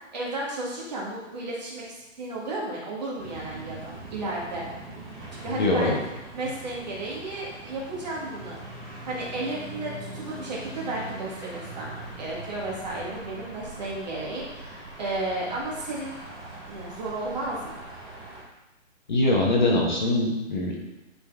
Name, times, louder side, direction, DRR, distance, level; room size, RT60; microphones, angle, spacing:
voice 1, 0.1-4.6 5.4-6.0 6.3-8.6 9.1-16.2 16.7-17.8, right 2 dB, 35° right, -4 dB, 1.9 m, -33 dB
sound 1, 3.2-18.4, right 2 dB, 5° left, 2.5 m, -41 dB
voice 2, 5.5-6.0 19.1-20.8, left 2 dB, 35° left, -2 dB, 1.2 m, -23 dB
10.5 x 4.2 x 3.6 m, 1.0 s
hypercardioid pair, 175°, 39 cm